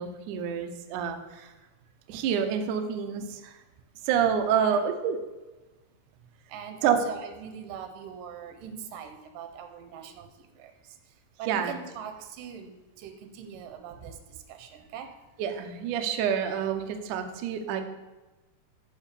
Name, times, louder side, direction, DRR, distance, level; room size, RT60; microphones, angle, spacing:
voice 1, 0.0-1.5 2.1-3.6 3.9-5.2 6.8-7.0 11.5-11.7 15.4-17.8, right 8 dB, 90° right, 6 dB, 1.7 m, -28 dB
voice 2, 6.5-11.0 11.4-14.2 14.5-15.1, right 7 dB, 75° right, 6 dB, 2.1 m, -42 dB
10.5 x 4.7 x 6.8 m, 1.1 s
omnidirectional pair, 4.8 m